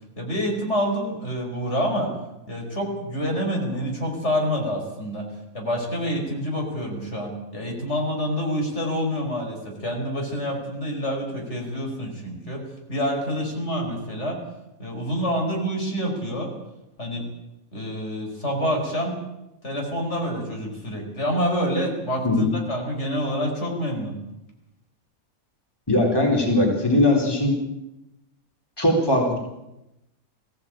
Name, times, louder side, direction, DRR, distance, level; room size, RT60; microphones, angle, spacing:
voice 1, 0.2-2.1 2.5-5.2 5.5-12.6 12.9-14.4 14.8-16.5 17.0-17.2 17.7-19.1 19.6-24.1, equal, 50° left, 1 dB, 5.3 m, -27 dB
voice 2, 25.9-27.5 28.8-29.4, left 1 dB, 15° left, 0 dB, 3.9 m, -20 dB
21.5 x 16.0 x 8.9 m, 0.90 s
omnidirectional pair, 1.5 m